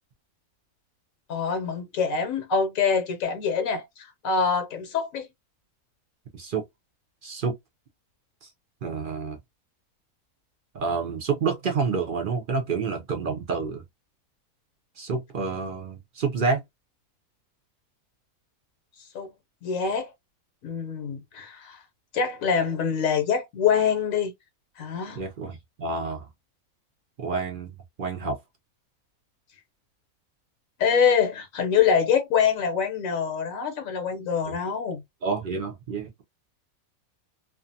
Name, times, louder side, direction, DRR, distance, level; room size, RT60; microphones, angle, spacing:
voice 1, 1.3-5.3 19.1-19.3 19.6-20.1 20.6-21.8 22.1-24.3 24.8-25.2 30.8-35.0, left 6 dB, 70° left, 1.0 m, -25 dB
voice 2, 6.3-6.6 7.2-7.5 8.8-9.4 10.7-13.8 15.0-16.6 25.2-26.3 27.2-27.7 28.0-28.4 34.4-34.6 35.2-36.2, right 4 dB, 60° right, 0.5 m, -28 dB
2.5 x 2.4 x 2.6 m
omnidirectional pair, 1.6 m